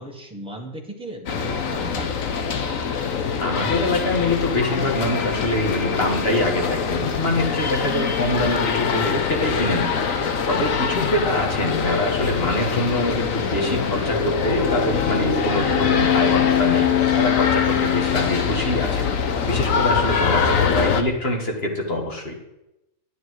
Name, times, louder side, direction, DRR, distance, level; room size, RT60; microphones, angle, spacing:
voice 1, 0.0-2.5, equal, 5° right, -1 dB, 1.6 m, -37 dB
sound 1, 1.3-21.0, left 6 dB, 90° left, 1.4 m, -23 dB
voice 2, 3.4-22.4, left 1 dB, 50° left, 1 dB, 2.2 m, -25 dB
10.5 x 10.0 x 4.8 m, 0.91 s
omnidirectional pair, 1.3 m